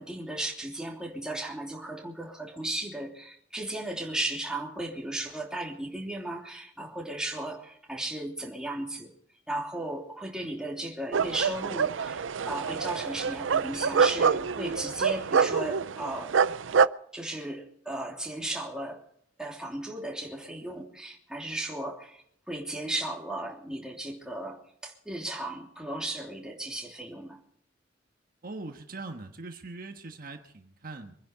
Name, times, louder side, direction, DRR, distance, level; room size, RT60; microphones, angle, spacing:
voice 1, 0.0-9.1 9.5-16.4 17.1-19.0 19.4-27.4, right 1 dB, 5° right, 0 dB, 3.0 m, -35 dB
sound 1, 11.1-16.9, right 6 dB, 85° right, 0.5 m, -26 dB
voice 2, 28.4-31.1, right 3 dB, 50° right, 5 dB, 1.4 m, -41 dB
24.5 x 10.5 x 5.2 m, 0.66 s
head